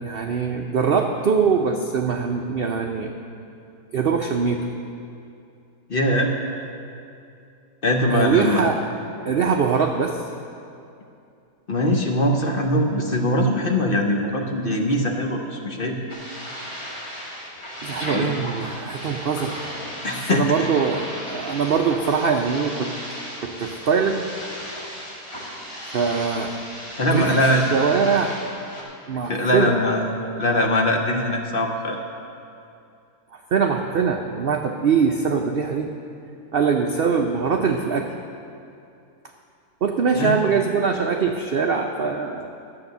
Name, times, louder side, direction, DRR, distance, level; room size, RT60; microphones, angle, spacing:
voice 1, 0.0-3.1 3.9-4.7 8.1-8.8 9.2-10.2 17.8-19.6 20.3-22.9 23.4-24.3 25.9-26.5 27.1-27.4 27.7-28.3 29.1-29.7 33.3-35.9 36.5-38.1 39.8-42.5, right 6 dB, 75° right, 3 dB, 0.5 m, -22 dB
voice 2, 5.9-6.3 7.8-8.7 11.7-16.0 18.1-18.3 20.0-20.7 26.9-27.6 29.2-30.0 30.4-32.0 40.2-40.4, left 1 dB, 45° left, 2 dB, 0.9 m, -21 dB
sound 1, 16.1-28.8, equal, 20° left, 2.1 m, -35 dB
12.0 x 7.6 x 6.7 m, 2.6 s
omnidirectional pair, 1.7 m